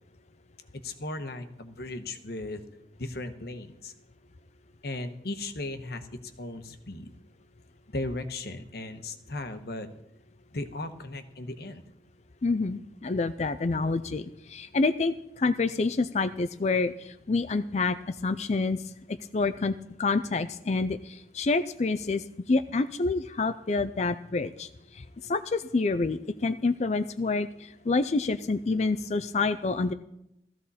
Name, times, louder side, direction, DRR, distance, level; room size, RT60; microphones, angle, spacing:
voice 1, 0.8-2.6 3.0-3.9 4.8-7.1 7.9-9.9 10.5-11.8, left 2 dB, 60° left, 8 dB, 1.2 m, -36 dB
voice 2, 12.4-18.8 19.3-24.7 24.9-29.9, left 3 dB, 40° left, 11 dB, 0.4 m, -28 dB
16.5 x 14.5 x 4.2 m, 0.82 s
head